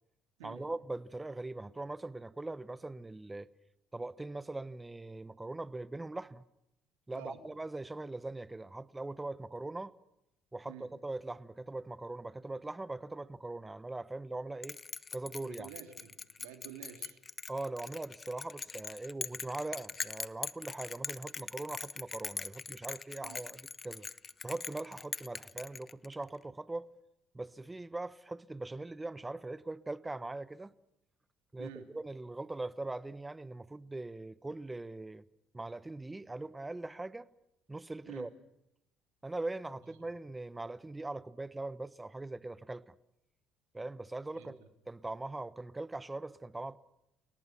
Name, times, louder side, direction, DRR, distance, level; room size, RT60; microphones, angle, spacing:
voice 1, 0.4-3.5 3.9-6.4 7.1-9.9 10.5-14.8 15.1-15.7 17.5-24.1 24.4-26.9 27.3-30.7 31.5-35.2 35.5-37.3 37.7-38.3 39.2-42.9 43.7-44.6 44.9-46.8, right 2 dB, 15° right, 1.1 m, -41 dB
Bell, 14.6-26.3, left 5 dB, 35° left, 0.9 m, -42 dB
voice 2, 15.4-17.2 23.2-23.4 31.6-31.9 38.0-38.3 44.3-44.5, right 10 dB, 85° right, 2.8 m, -49 dB
30.0 x 18.5 x 6.0 m
hypercardioid pair, 65°, 0 cm